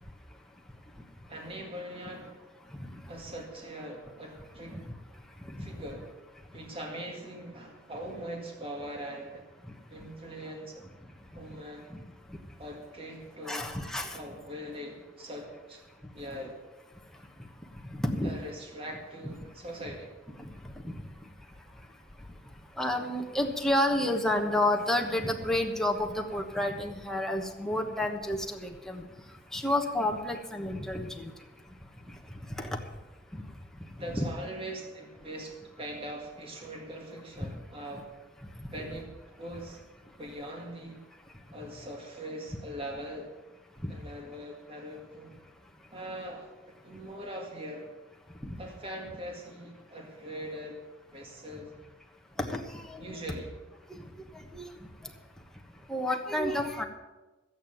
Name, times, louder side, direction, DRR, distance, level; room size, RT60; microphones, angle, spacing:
voice 1, 1.3-2.5 3.1-4.9 5.6-6.1 6.5-9.5 9.9-10.9 11.3-11.9 12.6-13.8 14.1-15.8 16.1-16.6 18.2-20.1 34.0-38.1 38.7-39.8 40.2-41.0 41.5-43.3 43.9-45.3 45.9-47.9 48.6-50.8 51.1-51.7 53.0-53.5, right 1 dB, 30° right, 1 dB, 2.0 m, -41 dB
voice 2, 13.5-14.2 18.1-18.3 19.2-19.3 22.8-29.0 29.5-31.3 32.6-32.7 34.1-34.3 43.8-43.9 52.4-53.0 54.5-54.7 55.9-56.9, left 1 dB, 5° left, 2 dB, 1.2 m, -30 dB
13.0 x 8.9 x 7.7 m, 1.2 s
head